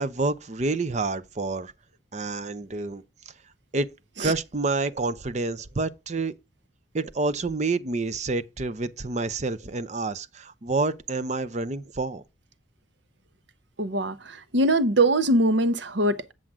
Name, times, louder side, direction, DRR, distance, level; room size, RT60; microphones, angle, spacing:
voice 1, 0.0-1.7 2.1-3.0 3.7-3.9 4.2-6.3 6.9-12.2, right 3 dB, 40° right, 0.6 m, -28 dB
voice 2, 13.8-16.3, right 1 dB, 75° right, 0.9 m, -22 dB
7.7 x 7.5 x 3.6 m
head